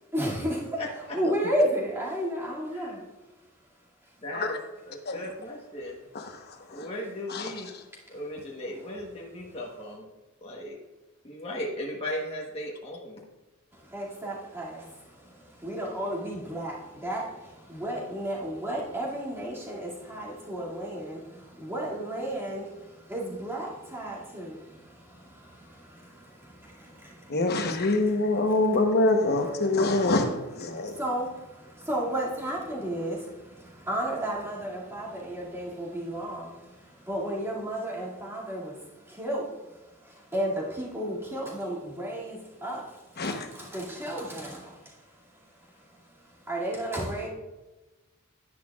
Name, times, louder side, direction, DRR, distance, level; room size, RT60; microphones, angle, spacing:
voice 1, 0.1-3.0 6.4-6.5 8.1-8.2 8.8-8.9 9.4-9.6 13.7-28.6 30.7-47.3, right 1 dB, 10° right, -6 dB, 2.4 m, -34 dB
voice 2, 0.8-1.2 4.2-4.5 4.9-6.0 6.7-7.7 8.1-10.0 10.4-10.8 11.2-13.2, left 1 dB, 30° left, -3 dB, 1.2 m, -36 dB
voice 3, 6.1-6.9 7.3-7.5 27.3-31.0 43.2-43.5, left 2 dB, 50° left, 5 dB, 1.0 m, -25 dB
10.5 x 10.0 x 2.4 m, 1.1 s
head